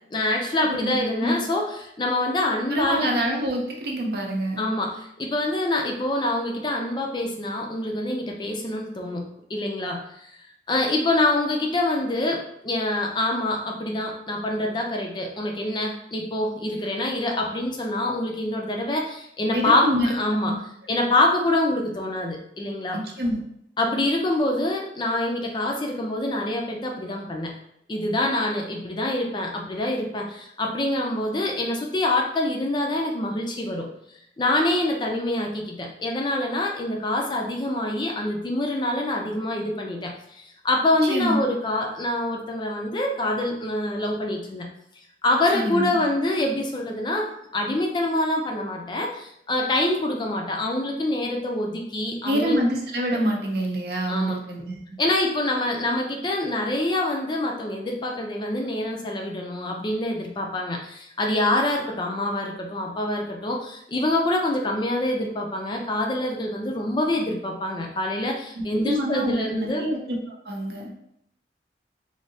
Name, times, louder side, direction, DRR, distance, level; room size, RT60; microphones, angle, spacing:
voice 1, 0.1-3.2 4.6-10.3 10.7-20.5 20.9-23.0 23.8-27.5 27.9-33.9 34.4-44.7 45.2-52.6 54.1-54.3 55.0-69.8, left 1 dB, 25° left, 1 dB, 0.4 m, -25 dB
voice 2, 0.6-1.6 2.7-4.7 19.5-20.1 20.5-20.6 22.9-23.4 41.1-41.4 45.5-45.9 52.2-54.8 68.5-70.2 70.5-70.9, equal, 60° right, 0 dB, 0.6 m, -26 dB
3.2 x 2.7 x 2.7 m, 0.75 s
head